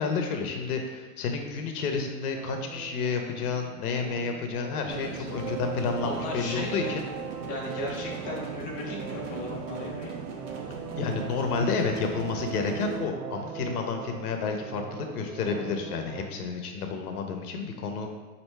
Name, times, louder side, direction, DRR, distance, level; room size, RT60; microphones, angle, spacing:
voice 1, 0.0-7.0 11.0-18.1, left 5 dB, 75° left, 4 dB, 0.7 m, -30 dB
sound 1, 2.3-16.3, right 7 dB, 90° right, 0.6 m, -40 dB
voice 2, 4.8-5.3 6.0-7.0 7.5-10.1, left 2 dB, 20° left, -3 dB, 0.5 m, -36 dB
sound 2, 4.9-13.0, right 4 dB, 30° right, 0.5 m, -40 dB
5.4 x 2.7 x 3.2 m, 1.2 s
supercardioid pair, 160°, 45 cm